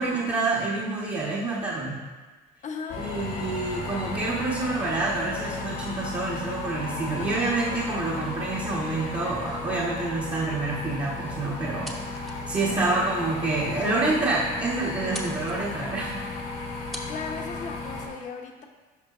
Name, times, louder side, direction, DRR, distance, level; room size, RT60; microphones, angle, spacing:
voice 1, 0.0-2.0 3.0-16.2, right 3 dB, 35° right, -5 dB, 1.2 m, -28 dB
voice 2, 2.6-3.1 7.2-7.6 12.6-13.0 17.1-18.6, left 5 dB, 45° left, 3 dB, 0.9 m, -38 dB
sound 1, 2.9-18.1, left 3 dB, 85° left, 1.9 m, -35 dB
sound 2, 11.6-12.5 12.9-13.0 13.7-13.8 14.1-14.2 14.3-14.7 15.0-15.6 16.5-16.6 16.9-17.1, equal, ahead, 0.8 m, -39 dB
10.5 x 5.1 x 2.5 m, 1.3 s
cardioid pair, 110°, 17 cm